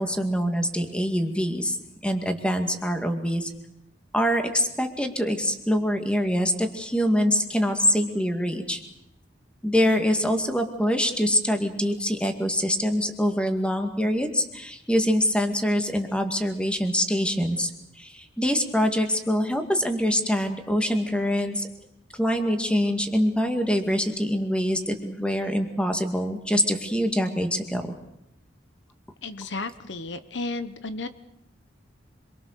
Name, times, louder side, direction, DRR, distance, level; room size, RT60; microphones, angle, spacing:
voice 1, 0.0-1.8 2.0-3.5 4.1-8.8 9.6-17.7 18.0-21.7 22.2-27.9, equal, 5° left, 5 dB, 2.2 m, -24 dB
voice 2, 29.2-31.1, left 3 dB, 75° left, 12 dB, 1.1 m, -33 dB
26.0 x 23.0 x 6.7 m, 0.83 s
head